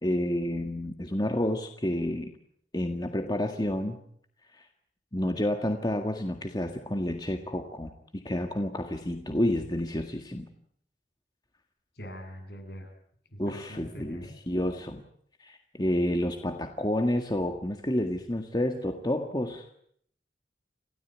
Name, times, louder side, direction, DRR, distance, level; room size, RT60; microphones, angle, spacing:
voice 1, 0.0-2.3 2.7-4.0 4.6-4.7 5.1-10.5 13.4-15.0 15.4-19.7, left 1 dB, 25° left, 5 dB, 1.8 m, -30 dB
voice 2, 12.0-12.9 13.3-14.4, equal, 60° left, 5 dB, 7.8 m, -43 dB
28.5 x 17.0 x 9.4 m, 0.68 s
head